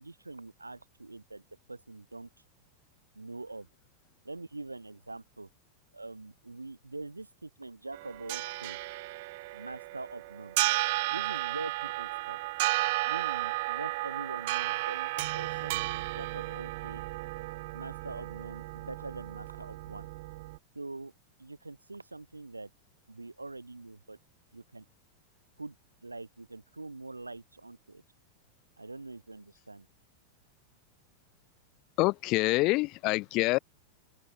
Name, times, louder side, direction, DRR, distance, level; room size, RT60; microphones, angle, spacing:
voice 1, 0.0-1.4 1.7-2.3 3.1-3.7 4.2-5.5 5.9-8.8 9.5-10.5 11.1-12.4 13.1-17.1 17.7-20.1 20.7-21.1 21.4-22.7 23.1-24.2 24.5-24.8 25.6-25.7 26.0-28.0 28.8-29.9, right 2 dB, 80° right, 3.4 m, -44 dB
sound 1, 7.9-20.6, right 21 dB, 50° right, 3.8 m, -33 dB
voice 2, 32.0-33.6, left 23 dB, 40° left, 0.8 m, -26 dB
figure-of-eight pair, 90°, 0 cm